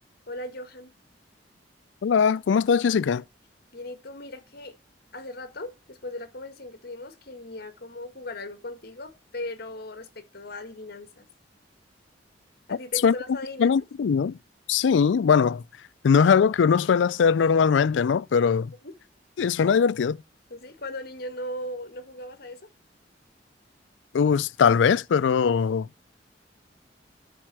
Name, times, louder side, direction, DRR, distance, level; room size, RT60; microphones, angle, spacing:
voice 1, 0.3-0.9 3.7-4.7 5.1-11.3 12.7-13.7 18.8-18.9 20.5-22.6, left 1 dB, 55° left, 1.6 m, -38 dB
voice 2, 2.0-3.2 13.0-13.2 13.6-14.4 14.7-15.6 16.0-18.7 19.4-20.2 24.1-25.9, left 6 dB, 85° left, 0.4 m, -21 dB
12.0 x 4.4 x 6.0 m
head